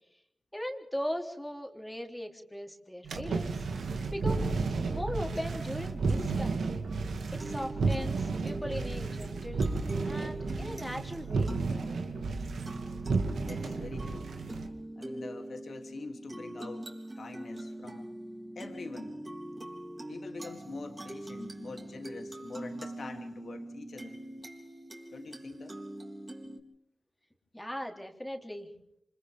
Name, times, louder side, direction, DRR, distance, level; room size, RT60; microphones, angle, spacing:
voice 1, 0.5-3.6 4.1-4.5 4.9-6.7 7.4-9.7 10.0-11.6 27.5-28.7, equal, 10° left, 3 dB, 3.4 m, -38 dB
sound 1, 3.0-14.7, right 4 dB, 80° right, 2.3 m, -32 dB
sound 2, 6.9-26.6, right 1 dB, 25° right, 3.7 m, -43 dB
voice 2, 13.5-14.3 15.0-18.1 18.5-19.2 20.1-24.2 25.1-25.8, left 3 dB, 65° left, 4 dB, 3.0 m, -44 dB
28.0 x 26.5 x 3.7 m, 0.73 s
cardioid pair, 60°, 0 cm